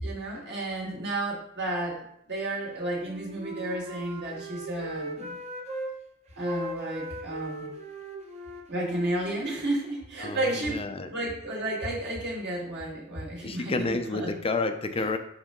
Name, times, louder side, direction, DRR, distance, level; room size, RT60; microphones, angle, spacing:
voice 1, 0.0-5.4 6.4-7.7 8.7-14.3, right 1 dB, 55° right, -3 dB, 2.1 m, -32 dB
Wind instrument woodwind instrument, 3.0-5.9 6.4-10.2, right 1 dB, 30° right, 1.0 m, -39 dB
voice 2, 10.2-11.1 13.4-15.2, left 3 dB, 25° left, 8 dB, 0.5 m, -30 dB
5.6 x 5.2 x 3.7 m, 0.73 s
head